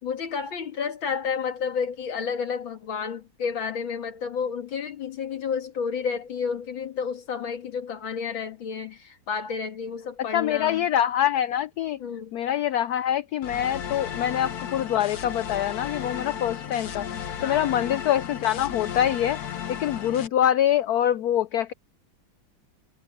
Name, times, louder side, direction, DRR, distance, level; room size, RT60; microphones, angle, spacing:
voice 1, 0.0-10.9 12.0-12.4 17.4-17.8, left 6 dB, 70° left, 2.8 m, -31 dB
voice 2, 10.3-12.0 12.3-17.1 17.4-19.4 19.7-21.7, left 11 dB, 90° left, 0.8 m, -25 dB
sound 1, 13.4-20.3, left 8 dB, 55° left, 1.5 m, -34 dB
omnidirectional pair, 2.2 m